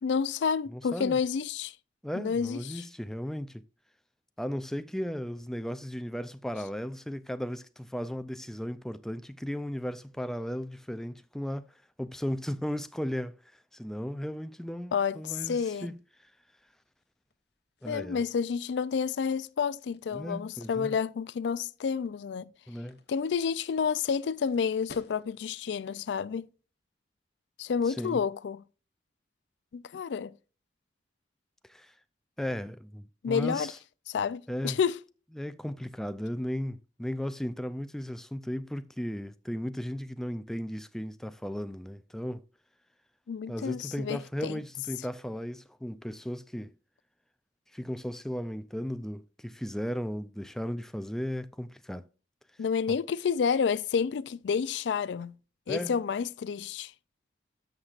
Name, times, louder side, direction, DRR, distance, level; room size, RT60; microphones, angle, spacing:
voice 1, 0.0-1.8 2.1-2.8 14.9-15.9 17.9-22.5 23.1-26.5 27.6-28.6 29.7-30.3 33.2-33.7 34.1-35.0 43.3-44.6 52.6-55.3 55.7-56.9, left 6 dB, 85° left, 0.4 m, -30 dB
voice 2, 0.7-1.2 2.0-3.6 4.4-13.3 13.7-16.0 17.8-18.2 20.1-21.0 22.7-23.0 27.9-28.2 31.7-31.9 32.4-33.8 34.5-34.8 35.4-42.4 43.5-46.7 47.7-52.1 55.7-56.0, equal, 5° left, 0.3 m, -36 dB
sound 1, 15.8-25.7, left 3 dB, 70° left, 1.0 m, -58 dB
13.0 x 6.5 x 2.4 m
head